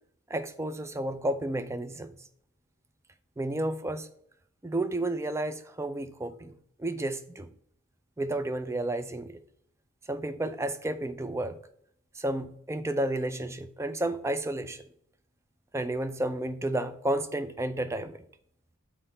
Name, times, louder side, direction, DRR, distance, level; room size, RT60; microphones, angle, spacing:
voice 1, 0.3-2.2 3.4-4.1 4.6-6.5 6.8-7.5 8.2-9.4 10.1-11.6 12.2-14.8 15.7-18.2, right 1 dB, 15° right, 11 dB, 0.4 m, -31 dB
5.7 x 4.3 x 5.5 m, 0.68 s
head